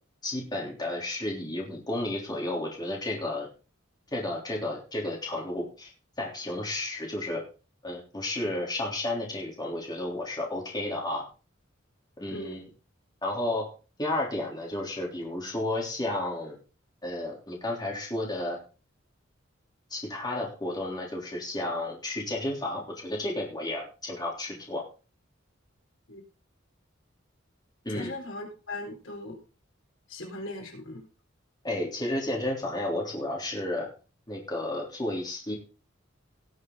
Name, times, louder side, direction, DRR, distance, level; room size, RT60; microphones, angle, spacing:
voice 1, 0.2-3.5 4.1-5.9 6.2-7.4 7.8-11.2 12.2-12.7 13.2-13.7 14.0-16.6 17.0-18.6 19.9-24.9 27.8-28.1 31.6-33.9 34.3-35.5, left 1 dB, 20° left, -2 dB, 3.5 m, -32 dB
voice 2, 27.9-29.4 30.1-31.0, left 2 dB, 85° left, 1 dB, 4.0 m, -38 dB
18.5 x 6.5 x 4.0 m, 0.34 s
head